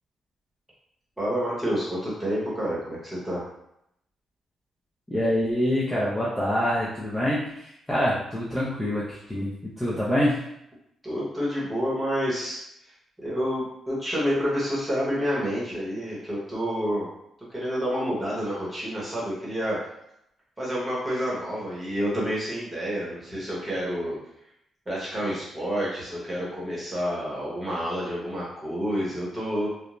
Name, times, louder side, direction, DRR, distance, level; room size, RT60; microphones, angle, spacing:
voice 1, 1.2-3.4 11.0-12.6 13.2-17.1 17.5-19.8 20.6-24.2 24.9-29.7, equal, 10° right, -7 dB, 0.9 m, -29 dB
voice 2, 5.1-9.5 9.8-10.4, left 1 dB, 10° left, -8 dB, 0.4 m, -25 dB
2.5 x 2.0 x 3.0 m, 0.79 s
cardioid pair, 165°, 0 cm